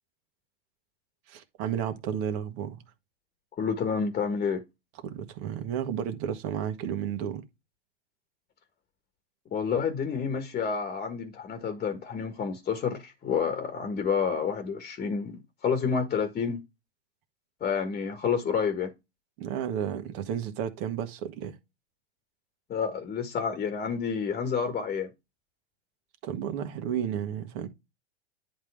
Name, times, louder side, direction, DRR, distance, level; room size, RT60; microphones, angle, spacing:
voice 1, 1.3-2.8 5.0-7.4 19.4-21.5 26.2-27.7, right 9 dB, 45° right, 1.6 m, -32 dB
voice 2, 3.6-4.6 9.5-16.6 17.6-18.9 22.7-25.1, left 6 dB, 25° left, 1.5 m, -29 dB
10.5 x 3.7 x 3.4 m
hypercardioid pair, 110°, 33 cm